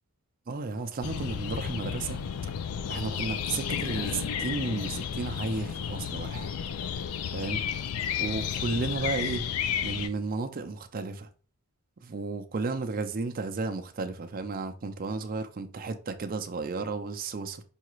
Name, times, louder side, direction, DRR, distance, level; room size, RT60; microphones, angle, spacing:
voice 1, 0.5-2.2 2.9-6.5 7.3-7.6 8.2-9.5 9.8-11.3 12.0-17.6, right 3 dB, 40° right, 0.4 m, -33 dB
sound 1, 1.0-10.1, left 8 dB, 75° left, 0.4 m, -32 dB
5.5 x 2.4 x 3.0 m
head